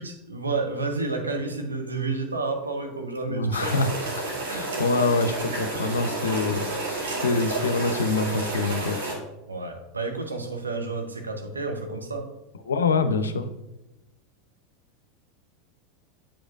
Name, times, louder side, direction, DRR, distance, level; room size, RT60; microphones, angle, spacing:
voice 1, 0.0-3.8 5.7-5.8 9.5-12.3, right 3 dB, 90° right, 3 dB, 0.8 m, -30 dB
voice 2, 3.3-3.9 4.5-6.7 7.2-9.0 12.7-13.4, left 3 dB, 80° left, 10 dB, 0.5 m, -25 dB
sound 1, 3.5-9.1, right 2 dB, 75° right, 1.9 m, -30 dB
8.7 x 5.0 x 2.5 m, 0.95 s
hypercardioid pair, 85°, 0 cm